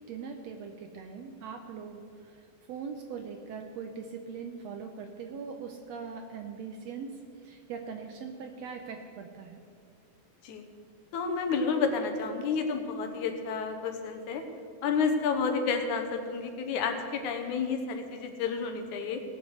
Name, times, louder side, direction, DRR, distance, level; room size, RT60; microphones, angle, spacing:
voice 1, 0.1-2.0 2.7-7.1 7.4-9.6, right 6 dB, 75° right, 4 dB, 1.6 m, -41 dB
voice 2, 11.1-14.4 14.8-19.2, left 5 dB, 70° left, 6 dB, 2.4 m, -30 dB
18.5 x 7.4 x 6.4 m, 2.4 s
omnidirectional pair, 3.7 m